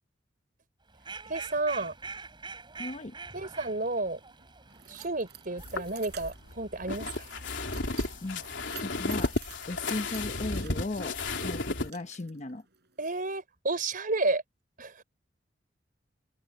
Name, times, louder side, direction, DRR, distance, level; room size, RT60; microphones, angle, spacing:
Fowl, 0.9-8.7, right 4 dB, 25° right, 7.5 m, -46 dB
voice 1, 1.3-1.9 3.3-4.2 4.9-7.3 13.0-14.4 14.8-15.0, right 2 dB, 50° right, 4.4 m, -31 dB
voice 2, 2.8-3.1 8.2-8.4 8.8-9.3 9.7-12.6, left 2 dB, 40° left, 1.0 m, -36 dB
Keys jangling, 4.1-13.1, right 11 dB, 65° right, 4.9 m, -51 dB
sound 1, 5.6-11.9, left 2 dB, 80° left, 3.6 m, -33 dB
open air
head